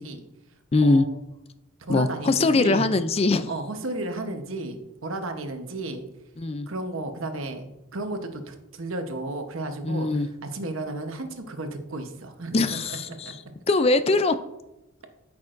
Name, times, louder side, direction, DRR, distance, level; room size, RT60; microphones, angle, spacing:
voice 1, 0.7-1.0 1.9-3.5 6.4-6.7 9.8-10.3 12.5-13.3 13.7-14.4, left 3 dB, 30° left, 11 dB, 0.3 m, -22 dB
voice 2, 1.9-3.0 3.5-6.0 6.7-10.2 10.5-13.3, right 2 dB, 75° right, 6 dB, 1.0 m, -33 dB
13.0 x 6.0 x 2.6 m, 0.93 s
head